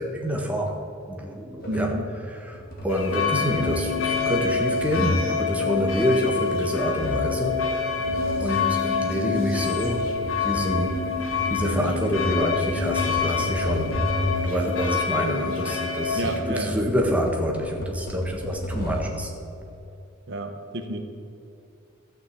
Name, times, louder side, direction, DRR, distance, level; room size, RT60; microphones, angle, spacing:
voice 1, 0.0-7.8 8.4-10.1 10.4-11.1 11.5-14.1 14.4-19.3, equal, 5° right, 0 dB, 1.4 m, -27 dB
sound 1, 1.6-2.0 2.5-3.0 3.4-4.0 4.5-6.5 6.9-7.5 8.0-8.5 9.1-14.6 15.5-19.3, equal, 50° left, 2.4 m, -32 dB
voice 2, 1.7-2.1 16.2-16.8 20.3-21.0, right 2 dB, 60° right, 6 dB, 1.0 m, -30 dB
sound 2, 2.9-16.4, left 5 dB, 70° left, 1.5 m, -27 dB
13.0 x 6.3 x 8.2 m, 2.6 s
head